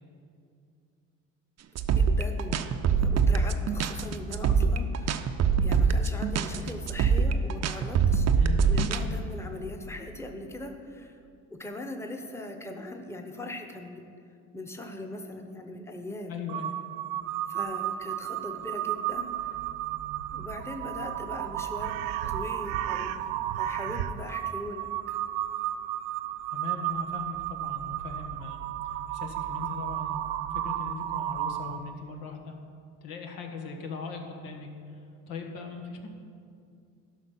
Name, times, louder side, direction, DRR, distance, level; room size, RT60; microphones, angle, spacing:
sound 1, 1.8-9.0, right 6 dB, 45° right, 0.7 m, -24 dB
voice 1, 2.0-5.3 5.6-8.3 8.7-11.2 11.5-14.2 14.5-16.3 17.5-19.7 20.3-23.2 23.6-25.2, left 1 dB, 5° left, 4 dB, 1.1 m, -40 dB
voice 2, 16.3-16.7 26.5-28.6 29.1-30.2 30.5-32.5 33.0-35.0 35.3-36.1, left 5 dB, 75° left, 3 dB, 1.4 m, -39 dB
Crow, 16.5-32.0, right 12 dB, 80° right, 0.5 m, -33 dB
11.5 x 5.7 x 5.7 m, 2.4 s
supercardioid pair, 70°, 36 cm